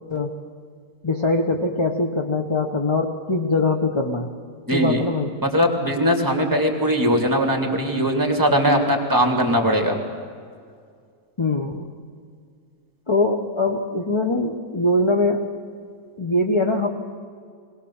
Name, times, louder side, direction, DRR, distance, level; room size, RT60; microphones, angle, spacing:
voice 1, 1.0-4.3 4.7-5.3 11.4-11.9 13.1-15.5 16.2-16.9, left 2 dB, 20° left, 3 dB, 0.9 m, -22 dB
voice 2, 4.7-5.0 5.5-10.0, equal, 10° right, 2 dB, 2.7 m, -20 dB
20.5 x 19.0 x 7.2 m, 2.2 s
omnidirectional pair, 1.8 m